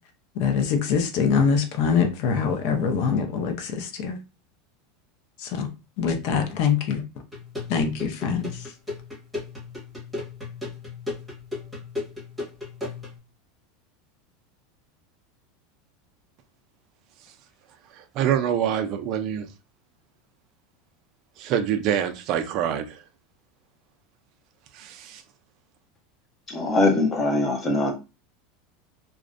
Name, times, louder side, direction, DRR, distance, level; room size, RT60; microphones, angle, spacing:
voice 1, 0.4-4.2 5.4-5.7 6.0-7.0 7.7-8.7, left 6 dB, 55° left, 0.6 m, -24 dB
sound 1, 7.3-13.2, left 3 dB, ahead, 1.1 m, -36 dB
voice 2, 17.9-19.5 21.4-23.0 24.7-25.2, right 9 dB, 45° right, 0.3 m, -26 dB
voice 3, 26.5-27.9, left 2 dB, 20° left, 0.7 m, -22 dB
2.4 x 2.1 x 2.4 m
supercardioid pair, 150°, 0 cm